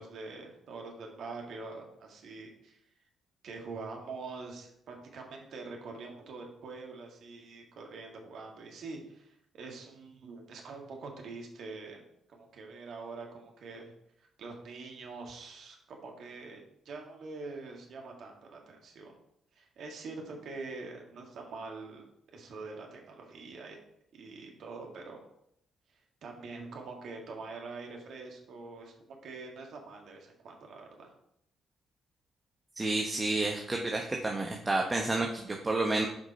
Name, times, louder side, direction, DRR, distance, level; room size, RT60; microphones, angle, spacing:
voice 1, 0.0-2.8 3.4-12.0 12.3-13.9 14.4-19.1 19.6-22.1 22.3-23.8 24.1-25.2 26.2-31.1, right 3 dB, 60° right, 1 dB, 1.9 m, -44 dB
voice 2, 32.8-36.1, right 2 dB, 25° right, 1 dB, 1.1 m, -30 dB
8.0 x 5.2 x 4.3 m, 0.76 s
hypercardioid pair, 45°, 0 cm